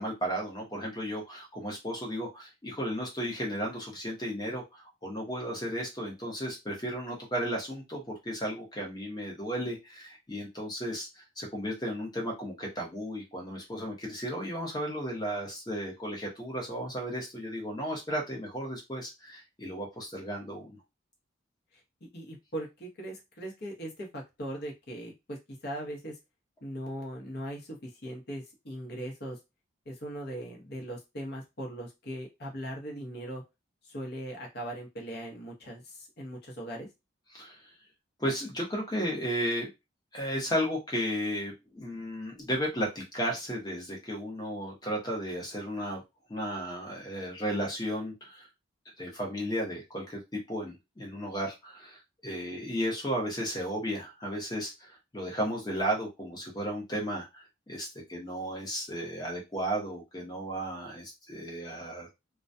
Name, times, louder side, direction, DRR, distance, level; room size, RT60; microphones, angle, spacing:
voice 1, 0.0-20.7 37.3-37.6 38.2-39.7 40.1-46.0 46.3-48.5 49.0-62.1, equal, 20° left, -1 dB, 0.8 m, -34 dB
voice 2, 22.0-26.2 26.6-29.4 29.9-33.4 33.8-36.9, right 1 dB, 55° left, 0 dB, 0.8 m, -39 dB
2.2 x 2.2 x 2.6 m, 0.23 s
head